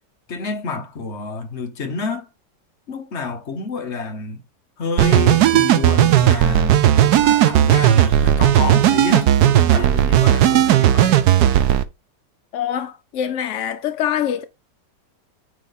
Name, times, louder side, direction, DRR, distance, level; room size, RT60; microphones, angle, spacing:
voice 1, 0.3-2.3 2.9-4.4 4.8-6.8 7.2-11.3, left 4 dB, 45° left, 1.2 m, -29 dB
sound 1, 5.0-11.8, right 11 dB, 70° right, 1.1 m, -15 dB
Sliding door, 6.1-10.8, right 3 dB, 35° right, 1.7 m, -36 dB
voice 2, 12.5-14.4, left 9 dB, 65° left, 0.7 m, -24 dB
9.1 x 3.5 x 4.1 m
omnidirectional pair, 1.9 m